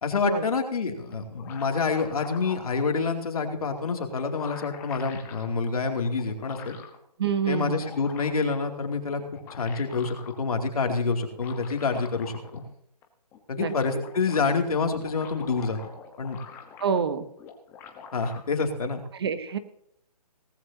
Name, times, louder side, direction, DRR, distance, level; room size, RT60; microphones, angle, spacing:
voice 1, 0.0-6.8 7.5-9.2 9.5-12.6 13.5-15.8 16.2-16.4 18.1-19.0, left 4 dB, 60° left, 4 dB, 2.6 m, -27 dB
sound 1, 1.1-2.8 3.8-3.9 4.1-5.5 6.2-7.0 7.5-8.5 9.2-10.4 11.3-12.7 13.0-13.1 13.3-14.5 14.9-17.1 17.4-18.4, left 6 dB, 10° left, 1.1 m, -45 dB
voice 2, 7.2-7.8 13.6-13.7 16.8-17.3 19.1-19.6, right 6 dB, 40° right, 12 dB, 0.9 m, -27 dB
18.0 x 14.5 x 2.8 m, 0.71 s
hypercardioid pair, 165°, 21 cm